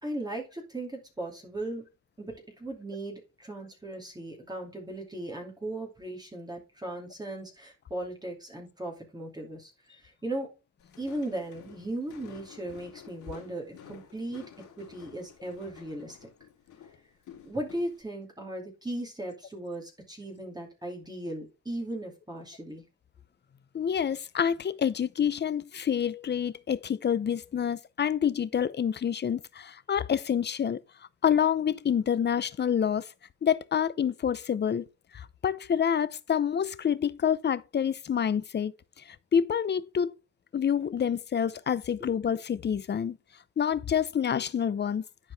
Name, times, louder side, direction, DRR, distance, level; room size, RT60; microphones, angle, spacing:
voice 1, 0.0-1.9 2.2-10.5 11.0-14.4 14.8-16.3 17.4-22.9 42.0-42.1, right 1 dB, 15° right, 2.5 m, -37 dB
Walk footsteps, 10.8-18.0, left 9 dB, 75° left, 2.8 m, -51 dB
voice 2, 23.7-30.8 31.2-33.1 33.4-34.9 35.1-38.7 39.1-40.1 40.5-43.2 43.6-45.0, left 8 dB, 35° left, 0.6 m, -27 dB
10.5 x 4.6 x 3.4 m
cardioid pair, 90°, 30 cm